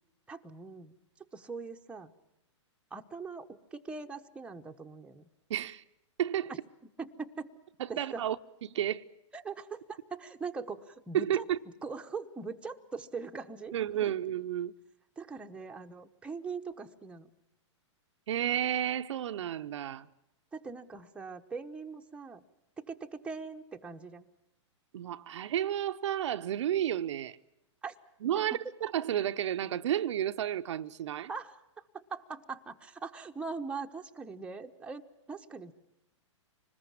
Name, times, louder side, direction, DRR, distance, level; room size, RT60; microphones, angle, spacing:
voice 1, 0.3-0.9 1.3-2.1 2.9-5.3 7.0-7.5 7.9-8.2 9.3-11.4 11.8-13.7 14.0-14.1 15.2-17.3 20.5-22.4 22.8-24.2 27.8-27.9 28.5-28.7 31.3-35.0 35.3-35.7, right 4 dB, 5° right, 1.0 m, -41 dB
voice 2, 5.5-5.8 6.2-6.5 7.8-8.4 8.6-9.0 11.1-11.6 13.7-14.7 18.3-20.1 24.9-27.4 28.2-31.3, right 11 dB, 70° right, 0.8 m, -31 dB
25.5 x 20.5 x 7.4 m
hypercardioid pair, 135°, 16 cm